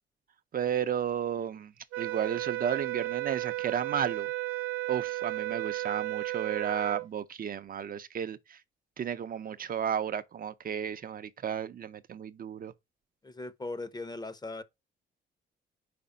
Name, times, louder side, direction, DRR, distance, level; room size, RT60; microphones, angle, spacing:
voice 1, 0.5-1.7 2.0-4.3 4.9-8.6 9.0-12.7, right 8 dB, 45° right, 0.6 m, -33 dB
sound 1, 1.9-7.1, right 19 dB, 90° right, 0.8 m, -34 dB
voice 2, 13.2-14.6, left 2 dB, 20° left, 0.8 m, -39 dB
5.1 x 4.9 x 5.5 m
cardioid pair, 90°, 20 cm